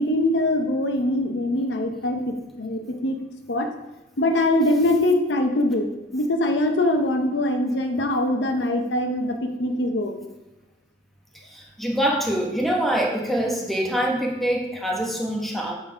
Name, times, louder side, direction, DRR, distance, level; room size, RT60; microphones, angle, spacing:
voice 1, 0.0-3.2 3.5-3.7 4.2-5.9 6.1-10.1, left 1 dB, 70° left, 5 dB, 0.7 m, -23 dB
voice 2, 11.4-15.7, right 1 dB, ahead, -1 dB, 1.0 m, -24 dB
7.2 x 3.9 x 5.0 m, 0.99 s
head